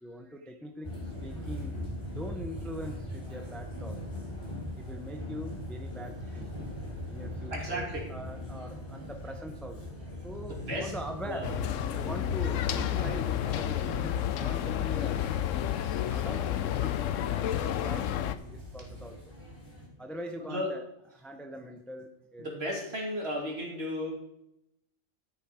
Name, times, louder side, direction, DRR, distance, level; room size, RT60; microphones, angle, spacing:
voice 1, 0.0-1.8 2.1-4.1 4.8-6.5 7.1-11.5 11.8-13.9 14.3-15.3 15.9-19.3 20.0-20.9 21.1-22.5, equal, ahead, 5 dB, 0.7 m, -42 dB
sound 1, 0.8-19.9, left 1 dB, 25° left, 4.0 m, -41 dB
voice 2, 7.5-8.1 10.5-10.9 11.3-11.6 20.4-20.7 22.4-24.1, equal, 55° right, -1 dB, 3.0 m, -34 dB
sound 2, 11.4-18.4, left 11 dB, 85° left, 1.0 m, -30 dB
13.0 x 6.7 x 5.0 m, 0.81 s
omnidirectional pair, 1.3 m